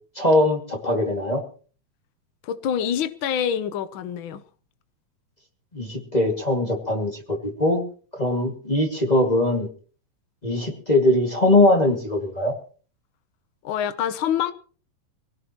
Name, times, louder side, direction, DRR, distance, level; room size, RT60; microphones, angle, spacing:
voice 1, 0.2-1.4 5.7-7.8 8.1-9.7 10.4-12.5, left 1 dB, 15° left, 2.0 m, -21 dB
voice 2, 2.4-4.4 13.6-14.5, left 9 dB, 80° left, 1.1 m, -26 dB
24.0 x 17.5 x 3.0 m
omnidirectional pair, 3.4 m